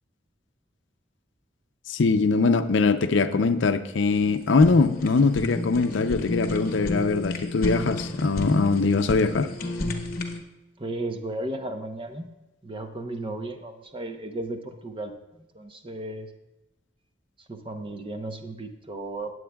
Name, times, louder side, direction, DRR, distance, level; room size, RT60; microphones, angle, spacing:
voice 1, 1.9-9.5, left 4 dB, 75° left, 10 dB, 0.5 m, -22 dB
Fire, 4.1-10.4, left 1 dB, 50° left, 1.2 m, -31 dB
voice 2, 10.8-12.3 12.6-15.1 15.5-16.3 17.5-19.3, right 2 dB, 30° right, 6 dB, 0.8 m, -34 dB
18.0 x 7.9 x 2.3 m, 0.99 s
head